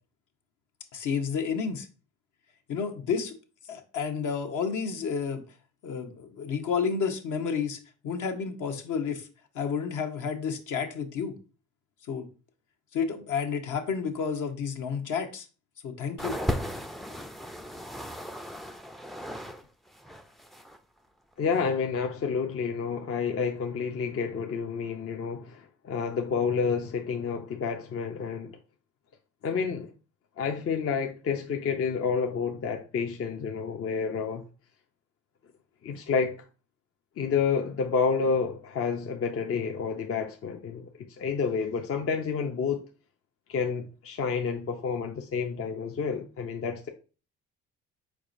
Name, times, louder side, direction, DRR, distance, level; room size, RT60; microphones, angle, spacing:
voice 1, 0.9-1.9 2.7-3.3 3.7-5.4 5.8-9.3 9.5-11.3 12.1-12.3 12.9-15.5 15.8-16.4, left 6 dB, 60° left, 1.0 m, -30 dB
sound 1, 16.2-19.6 19.9-20.8 21.5-21.6, equal, ahead, 0.4 m, -36 dB
voice 2, 21.4-28.6 29.4-29.9 30.4-34.4 35.8-36.4 37.2-42.9 43.5-46.9, left 5 dB, 40° left, 0.6 m, -29 dB
4.7 x 4.2 x 2.6 m
hypercardioid pair, 60°, 34 cm